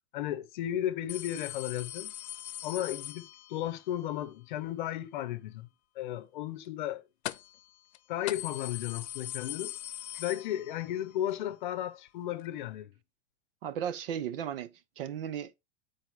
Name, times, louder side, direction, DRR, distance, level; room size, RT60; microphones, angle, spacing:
voice 1, 0.1-2.1 2.6-5.7 5.9-7.0 8.1-9.8 10.1-12.9, left 12 dB, 45° left, 0.9 m, -34 dB
sound 1, 1.1-3.8 7.2-7.6 7.9-8.0 8.3-11.0 11.3-11.4 12.4-12.5, left 13 dB, 80° left, 0.7 m, -41 dB
voice 2, 13.6-15.6, right 9 dB, 60° right, 0.9 m, -36 dB
9.0 x 4.4 x 4.7 m
supercardioid pair, 180°, 32 cm